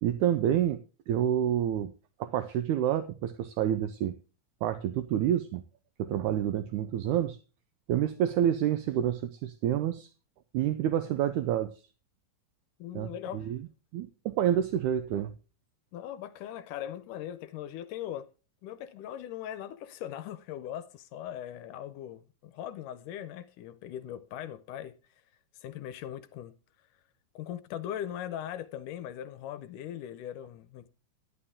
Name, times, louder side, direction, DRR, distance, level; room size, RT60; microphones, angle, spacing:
voice 1, 0.0-0.8 1.1-1.9 2.2-4.1 4.6-5.6 6.0-7.4 7.9-10.1 10.5-11.7 13.0-13.6 13.9-15.3, right 10 dB, 75° right, 1.9 m, -28 dB
voice 2, 12.8-13.5 15.9-18.3 18.6-25.0 25.6-26.6 27.4-30.9, left 11 dB, 75° left, 2.1 m, -40 dB
11.0 x 11.0 x 3.6 m
omnidirectional pair, 3.9 m